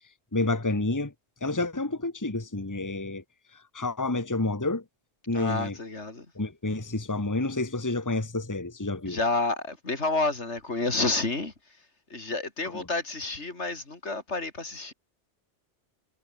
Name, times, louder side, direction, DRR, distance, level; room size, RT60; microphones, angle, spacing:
voice 1, 0.3-1.1 1.4-3.2 3.7-4.8 5.3-5.7 6.3-9.2 12.7-12.8, left 2 dB, 15° left, 1.6 m, -29 dB
voice 2, 5.3-6.3 9.1-11.5 12.1-14.9, left 3 dB, 80° left, 3.6 m, -29 dB
omnidirectional pair, 1.2 m